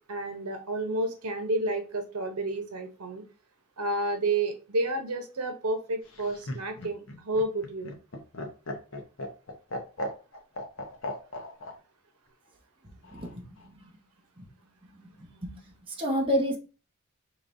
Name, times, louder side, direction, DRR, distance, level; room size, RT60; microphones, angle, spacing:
voice 1, 0.1-3.2 3.8-7.0 7.2-7.9, right 2 dB, 85° right, 5 dB, 0.9 m, -30 dB
Laughter, 6.1-11.7 13.0-13.7, left 1 dB, 60° left, 0.9 m, -37 dB
voice 2, 13.1-13.9 14.4-14.5 14.9-15.5 15.9-16.6, equal, 25° right, -1 dB, 1.0 m, -30 dB
5.0 x 3.2 x 2.6 m, 0.34 s
head